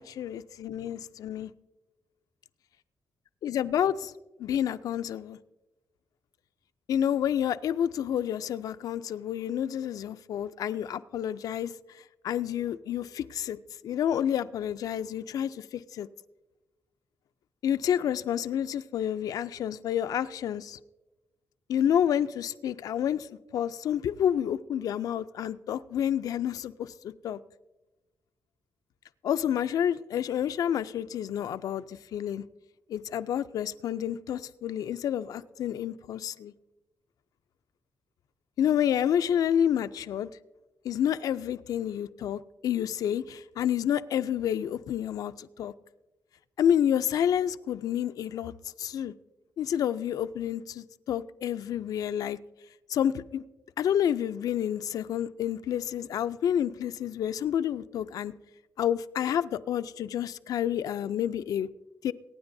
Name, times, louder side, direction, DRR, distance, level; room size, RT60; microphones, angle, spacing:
voice 1, 0.0-1.5 3.4-4.1 4.4-5.4 6.9-11.7 12.2-13.6 13.8-16.1 17.6-20.8 21.7-27.4 29.2-32.4 32.9-36.5 38.6-40.3 40.8-45.7 46.6-48.5 48.8-49.1 49.6-52.4 52.9-53.4 53.8-58.3 58.8-61.7 62.0-62.1, left 9 dB, 85° left, 0.4 m, -29 dB
23.5 x 9.6 x 2.6 m
wide cardioid pair, 125°, 6 cm